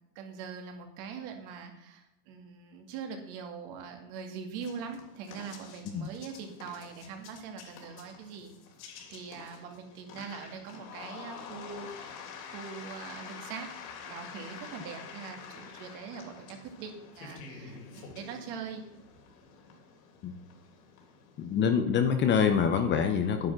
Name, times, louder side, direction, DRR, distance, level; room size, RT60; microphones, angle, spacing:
voice 1, 0.2-8.5 9.1-13.7 14.0-18.8, right 6 dB, 50° right, 4 dB, 2.3 m, -42 dB
sound 1, 4.6-21.6, left 6 dB, 75° left, 3.2 m, -48 dB
voice 2, 21.4-23.5, left 7 dB, 25° left, 7 dB, 0.6 m, -26 dB
10.0 x 9.9 x 6.0 m, 0.86 s
supercardioid pair, 160°, 48 cm